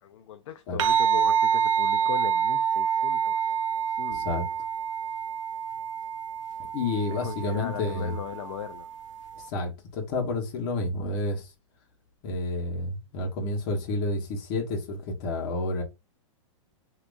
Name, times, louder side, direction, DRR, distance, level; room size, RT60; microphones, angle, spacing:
voice 1, 0.0-4.4 7.1-8.9, left 10 dB, 65° left, 0.4 m, -38 dB
sound 1, 0.8-9.5, right 8 dB, 75° right, 0.5 m, -27 dB
voice 2, 4.1-4.5 6.7-8.1 9.4-11.5 12.2-15.8, left 2 dB, 45° left, 1.3 m, -30 dB
3.5 x 2.9 x 2.5 m
hypercardioid pair, 145°, 16 cm